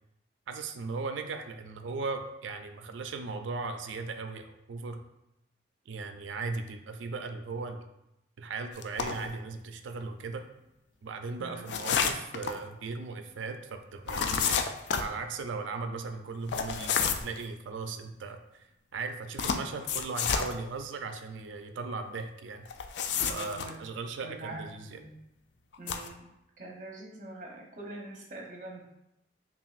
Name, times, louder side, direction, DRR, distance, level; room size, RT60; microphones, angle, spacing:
voice 1, 0.5-5.0 5.9-7.8 8.4-10.5 11.0-14.6 15.0-22.7 23.3-25.0, right 4 dB, 90° right, 7 dB, 0.4 m, -38 dB
sound 1, 8.8-9.3 11.6-12.6 14.1-15.1 16.5-17.4 19.4-20.5 22.6-23.7 25.7-26.1, left 6 dB, 65° left, 0.3 m, -30 dB
voice 2, 23.2-23.7 24.2-25.1 25.8-26.2 26.6-28.8, right 2 dB, 45° right, -1 dB, 0.8 m, -43 dB
5.6 x 2.5 x 2.4 m, 0.86 s
head